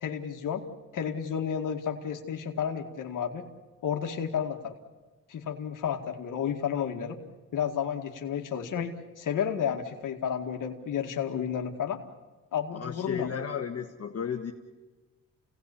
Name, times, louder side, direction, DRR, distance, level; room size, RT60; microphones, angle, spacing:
voice 1, 0.0-0.7 0.9-3.5 3.8-4.7 5.3-7.2 7.5-12.0 12.5-13.3, left 8 dB, 70° left, 3 dB, 2.1 m, -31 dB
voice 2, 12.7-14.5, left 7 dB, 45° left, 1 dB, 1.7 m, -33 dB
28.0 x 18.0 x 8.5 m, 1.3 s
cardioid pair, 95°, 33 cm